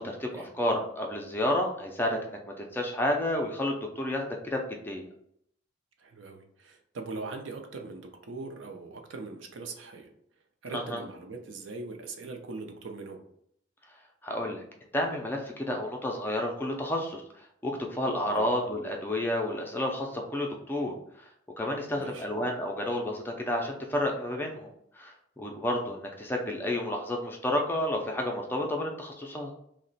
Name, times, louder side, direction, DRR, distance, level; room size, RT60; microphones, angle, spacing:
voice 1, 0.0-4.6 4.8-5.1 10.7-11.0 14.2-14.6 14.9-17.2 17.6-20.9 21.6-24.7 25.0-29.5, left 1 dB, 10° left, 1 dB, 0.4 m, -30 dB
voice 2, 6.0-10.1 10.6-13.2 18.3-18.5 21.9-22.3, right 3 dB, 75° right, 3 dB, 0.5 m, -41 dB
2.9 x 2.1 x 4.0 m, 0.71 s
head